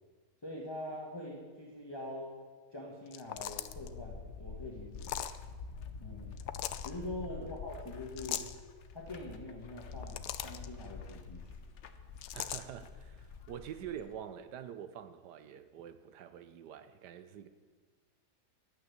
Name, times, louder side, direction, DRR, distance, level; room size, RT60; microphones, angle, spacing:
voice 1, 0.4-2.4 2.7-5.2 6.0-6.3 6.8-8.5 8.9-11.5, left 1 dB, 15° left, 1.4 m, -44 dB
sound 1, 3.1-3.9 5.0-5.4 6.4-6.9 8.2-8.6 9.8-10.7 12.2-12.6, left 12 dB, 75° left, 1.1 m, -39 dB
sound 2, 3.3-14.1, left 5 dB, 55° left, 0.9 m, -47 dB
voice 2, 12.3-17.5, right 9 dB, 75° right, 1.3 m, -46 dB
11.5 x 9.1 x 7.2 m
omnidirectional pair, 1.8 m